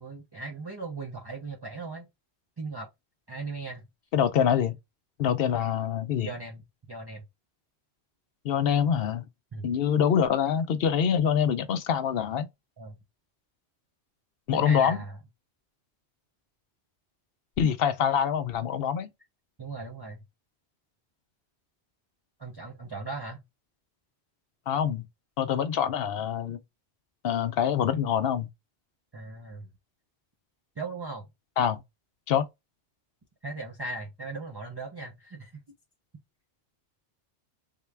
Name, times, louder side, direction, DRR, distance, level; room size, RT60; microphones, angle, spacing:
voice 1, 0.0-2.1 2.6-2.9 3.3-3.9 6.2-7.2 9.5-9.7 12.8-13.0 14.5-15.2 19.6-20.2 22.4-23.4 29.1-29.7 30.8-31.3 33.4-35.6, right 3 dB, 30° right, 0.5 m, -38 dB
voice 2, 4.1-4.7 5.2-6.3 8.4-9.3 9.6-12.5 14.5-15.0 17.6-19.1 24.7-25.1 25.4-26.6 27.2-28.5 31.6-31.8 32.3-32.5, left 8 dB, 65° left, 0.7 m, -25 dB
3.7 x 2.2 x 3.2 m
omnidirectional pair, 1.1 m